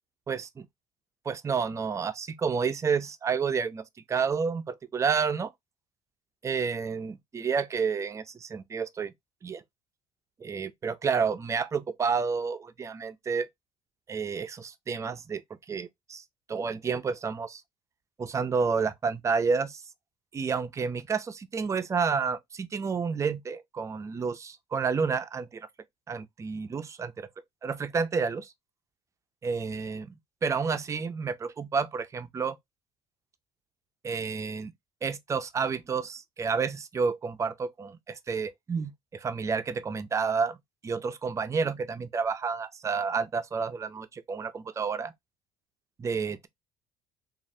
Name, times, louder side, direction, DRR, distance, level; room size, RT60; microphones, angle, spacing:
voice 1, 0.3-0.7 1.3-5.5 6.4-9.1 9.4-9.6 10.4-13.5 14.1-15.4 15.7-16.2 16.5-17.6 18.2-19.8 20.3-25.6 26.1-27.3 27.6-28.5 29.4-30.1 30.4-32.6 34.0-34.7 35.0-40.6 40.8-45.1 46.0-46.5, right 5 dB, 20° right, 0.4 m, -30 dB
3.1 x 2.4 x 2.6 m
cardioid pair, 130°, 14 cm